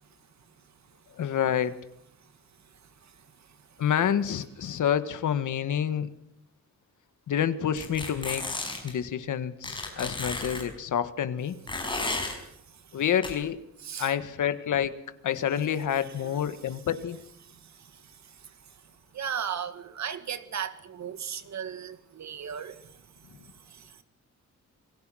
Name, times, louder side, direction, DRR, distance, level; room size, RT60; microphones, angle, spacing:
voice 1, 1.2-1.7 3.8-6.1 7.3-8.5 8.8-11.6 12.9-13.6 14.0-15.0 15.2-17.2, left 9 dB, 80° left, 1.5 m, -28 dB
voice 2, 3.0-3.8 11.7-11.9 12.2-13.0 13.8-14.1 15.9-16.4 16.7-16.8 17.4-18.8 19.1-24.0, right 8 dB, 65° right, 1.9 m, -39 dB
sound 1, 7.8-8.9 9.6-10.6 11.7-12.3 13.2-13.3, left 2 dB, 15° left, 5.3 m, -33 dB
27.5 x 20.0 x 6.3 m
wide cardioid pair, 165°, 30 cm